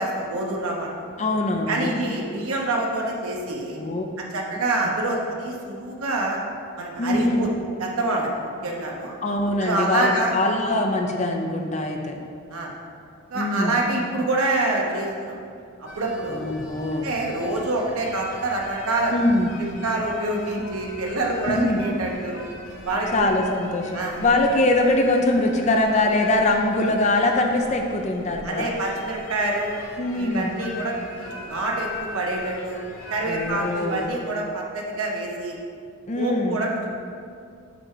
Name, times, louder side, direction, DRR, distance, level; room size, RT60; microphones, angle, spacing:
voice 1, 0.0-1.2 1.7-3.8 4.3-6.4 6.8-7.5 7.8-9.1 9.6-10.3 12.5-12.7 13.3-15.3 15.8-16.4 17.0-19.1 19.8-22.4 22.8-23.2 23.9-24.2 28.4-29.7 30.1-32.8 33.1-35.6 36.2-36.9, right 2 dB, 80° right, -1 dB, 0.9 m, -26 dB
voice 2, 1.2-2.0 3.8-4.1 7.0-7.5 9.2-12.2 13.3-13.8 16.3-17.1 19.1-19.5 21.5-21.8 23.1-28.7 30.0-30.6 33.3-34.1 36.1-36.6, left 2 dB, 30° left, 3 dB, 0.5 m, -23 dB
sound 1, 15.9-34.1, left 2 dB, 60° left, 0.8 m, -40 dB
7.8 x 3.3 x 4.8 m, 2.3 s
head